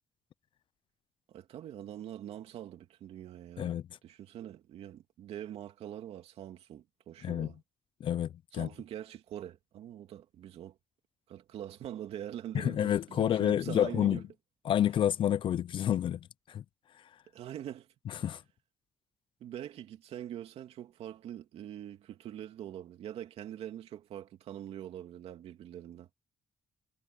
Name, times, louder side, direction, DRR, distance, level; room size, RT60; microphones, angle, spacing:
voice 1, 1.3-3.8 4.0-7.6 8.5-10.8 11.3-14.2 17.3-17.9 18.2-18.3 19.4-26.1, right 11 dB, 75° right, 2.8 m, -44 dB
voice 2, 8.0-8.7 12.5-14.2 14.7-16.6 18.1-18.4, left 10 dB, 55° left, 0.4 m, -29 dB
cardioid pair, 100°, 10 cm